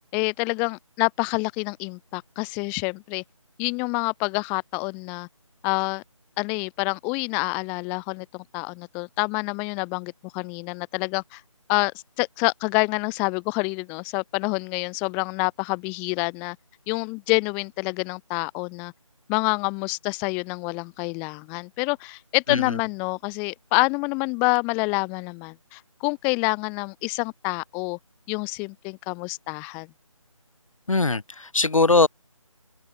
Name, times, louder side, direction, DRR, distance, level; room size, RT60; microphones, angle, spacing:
voice 1, 0.1-3.2 3.6-5.3 5.6-6.0 6.4-11.4 11.7-16.6 16.9-18.9 19.3-28.0 28.3-29.9, left 33 dB, 10° left, 1.4 m, -27 dB
voice 2, 30.9-32.1, left 3 dB, 70° left, 2.3 m, -20 dB
figure-of-eight pair, 165°, 17 cm